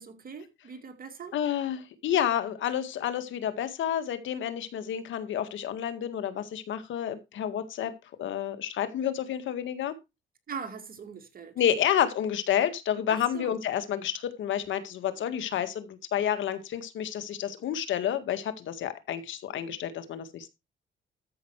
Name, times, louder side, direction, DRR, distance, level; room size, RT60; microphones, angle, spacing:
voice 1, 0.0-1.3 10.5-11.6 13.1-13.6, right 6 dB, 45° right, 2.3 m, -41 dB
voice 2, 1.3-7.9 8.2-10.0 11.6-20.5, left 10 dB, 75° left, 1.9 m, -30 dB
13.5 x 6.1 x 4.7 m
cardioid pair, 90°, 20 cm